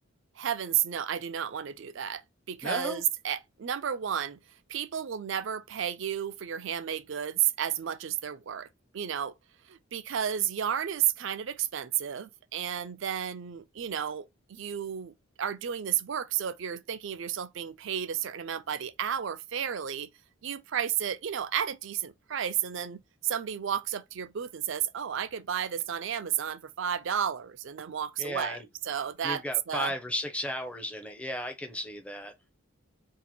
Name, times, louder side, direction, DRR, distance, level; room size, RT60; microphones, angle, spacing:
voice 1, 0.4-2.2 2.5-4.4 4.7-8.7 8.9-9.3 9.7-20.1 20.4-29.9, right 9 dB, 60° right, 0.4 m, -32 dB
voice 2, 2.6-3.0 28.2-28.7 29.2-32.3, left 1 dB, 5° left, 0.5 m, -35 dB
2.9 x 2.5 x 4.0 m
head